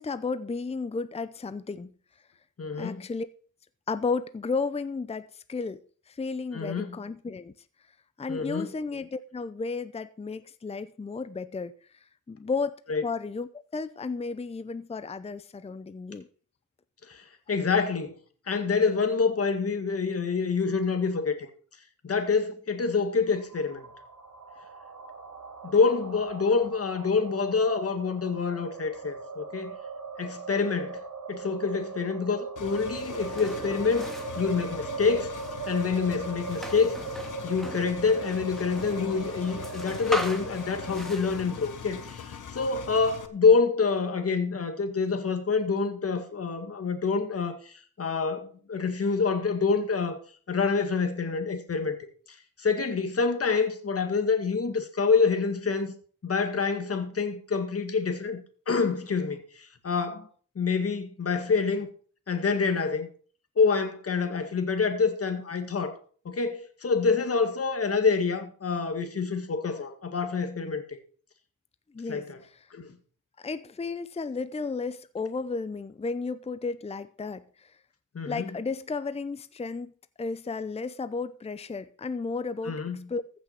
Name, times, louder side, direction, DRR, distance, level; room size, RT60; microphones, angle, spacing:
voice 1, 0.0-1.9 2.8-3.3 3.9-5.8 6.1-7.5 8.2-11.7 12.3-12.8 13.0-16.3 71.9-72.3 72.5-72.7 73.4-77.7 78.2-79.9 80.2-82.8 83.1-83.2, left 4 dB, 20° left, 0.6 m, -33 dB
voice 2, 2.6-3.0 6.5-7.0 8.3-8.7 12.9-13.0 17.1-18.1 18.5-21.5 22.0-23.8 25.6-29.8 30.2-31.0 31.3-35.3 35.7-37.0 37.4-50.2 50.5-52.0 52.6-55.9 56.2-60.3 60.6-61.9 62.3-63.1 63.6-66.0 66.3-71.0 72.1-72.4 72.7-73.0 78.1-78.5 82.6-83.1, left 5 dB, 40° left, 2.0 m, -27 dB
sound 1, 23.3-41.1, right 4 dB, 55° right, 3.7 m, -39 dB
Engine, 32.6-43.3, left 7 dB, 60° left, 1.4 m, -42 dB
sound 2, 32.9-42.4, equal, ahead, 2.1 m, -41 dB
14.5 x 6.2 x 5.7 m
cardioid pair, 95°, 34 cm